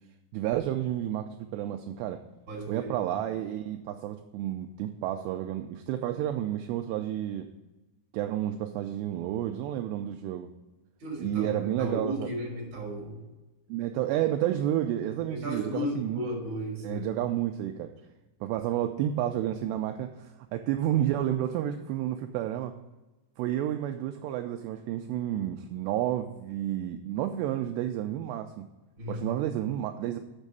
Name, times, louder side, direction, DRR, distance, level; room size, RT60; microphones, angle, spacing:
voice 1, 0.3-2.2 2.7-7.5 8.1-10.5 11.2-12.3 13.7-16.3 16.8-17.9 18.4-22.7 23.4-28.7 29.1-30.2, right 12 dB, 85° right, 6 dB, 2.4 m, -31 dB
voice 2, 2.5-2.9 11.0-13.3 15.3-17.1 29.0-29.2, equal, 30° right, -2 dB, 2.8 m, -34 dB
7.3 x 6.2 x 6.6 m, 1.1 s
omnidirectional pair, 5.3 m